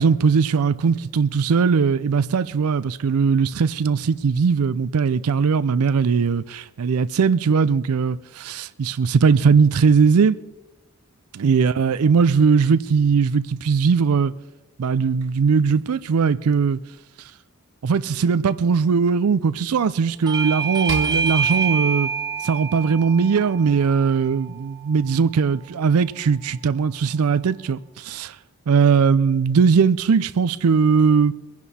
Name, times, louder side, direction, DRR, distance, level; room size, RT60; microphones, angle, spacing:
voice 1, 0.0-10.4 11.4-14.3 14.8-16.8 17.8-22.1 22.4-28.4 28.7-31.3, right 5 dB, 85° right, 0.4 m, -19 dB
Bell / Doorbell, 20.3-25.4, right 5 dB, 20° right, 0.8 m, -27 dB
sound 1, 20.9-23.3, right 3 dB, 60° right, 1.8 m, -35 dB
22.0 x 10.5 x 4.2 m
head